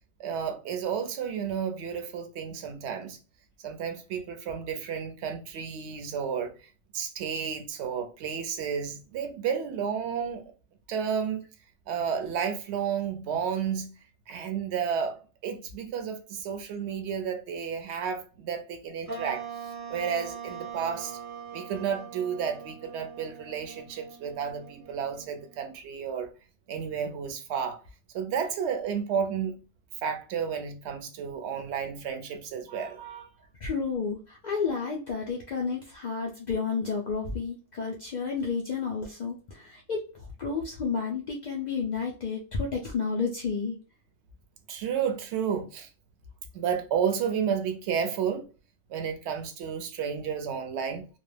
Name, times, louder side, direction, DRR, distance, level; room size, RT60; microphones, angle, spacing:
voice 1, 0.2-3.2 3.6-6.5 6.9-10.5 10.9-11.4 11.9-13.9 14.3-15.2 15.4-19.4 19.9-21.2 21.5-26.3 26.7-27.8 28.1-29.5 30.0-33.3 44.7-45.9 46.5-48.5 48.9-51.1, right 7 dB, 65° right, 0.8 m, -31 dB
sound 1, 19.1-25.8, right 7 dB, 20° right, 0.5 m, -42 dB
voice 2, 33.6-40.1 40.4-43.8, left 5 dB, 90° left, 0.4 m, -31 dB
2.3 x 2.0 x 3.2 m
omnidirectional pair, 1.3 m